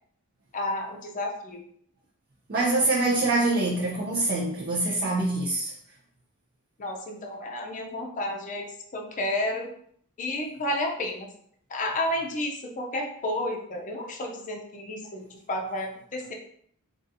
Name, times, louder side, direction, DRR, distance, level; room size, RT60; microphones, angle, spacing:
voice 1, 0.5-1.6 6.8-9.7 10.2-11.3 11.7-16.3, left 1 dB, 35° left, 1 dB, 0.5 m, -31 dB
voice 2, 2.5-5.7, right 2 dB, 45° right, -5 dB, 0.5 m, -25 dB
3.8 x 2.4 x 2.6 m, 0.65 s
head